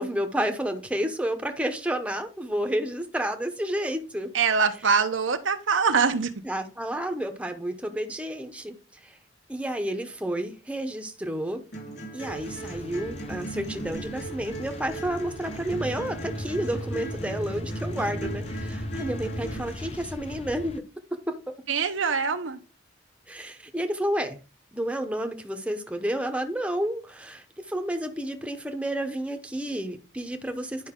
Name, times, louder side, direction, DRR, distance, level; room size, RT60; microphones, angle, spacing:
voice 1, 0.0-4.3 6.4-8.8 9.0-9.2 9.5-11.6 12.1-20.8 21.3-21.4 23.3-24.4 24.7-30.9, right 1 dB, 5° right, 0.8 m, -30 dB
voice 2, 4.3-6.3 21.7-22.6, right 5 dB, 85° right, 0.9 m, -23 dB
sound 1, 11.7-19.7, right 1 dB, 60° left, 4.3 m, -36 dB
sound 2, 12.3-20.8, left 1 dB, 30° left, 0.6 m, -40 dB
10.5 x 5.3 x 3.7 m
head